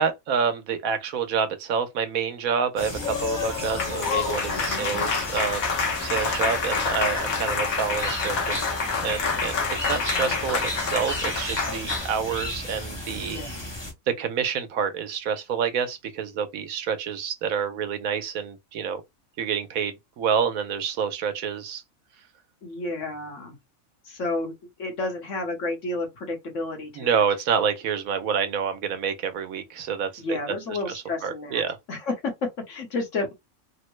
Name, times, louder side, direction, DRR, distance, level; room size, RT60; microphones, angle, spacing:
voice 1, 0.0-5.6 6.0-8.6 9.0-9.5 9.9-13.4 14.2-19.0 19.4-21.8 27.0-30.4 31.2-31.8, right 6 dB, 85° right, 1.2 m, -28 dB
sound 1, 2.8-13.9, left 1 dB, 20° left, 1.0 m, -35 dB
Applause, 3.0-12.1, left 5 dB, 85° left, 1.4 m, -27 dB
voice 2, 4.5-4.9 13.3-13.6 22.6-23.6 24.0-24.5 24.8-27.2 30.2-31.6 31.9-33.3, left 2 dB, 65° left, 1.5 m, -31 dB
3.5 x 2.1 x 3.1 m
omnidirectional pair, 1.4 m